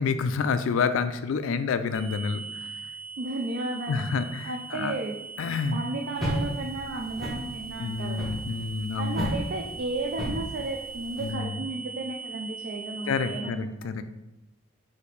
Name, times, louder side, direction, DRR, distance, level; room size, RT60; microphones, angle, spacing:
voice 1, 0.0-2.9 3.9-4.9 5.4-5.8 7.8-9.3 11.2-11.6 13.1-14.0, left 5 dB, 65° left, 11 dB, 0.3 m, -28 dB
sound 1, 1.9-13.4, right 5 dB, 25° right, 1.2 m, -41 dB
voice 2, 3.2-5.2 5.7-8.4 9.0-13.9, right 2 dB, 50° right, 2 dB, 0.4 m, -34 dB
sound 2, 6.2-11.3, equal, ahead, 0.9 m, -33 dB
4.2 x 2.7 x 4.0 m, 0.94 s
head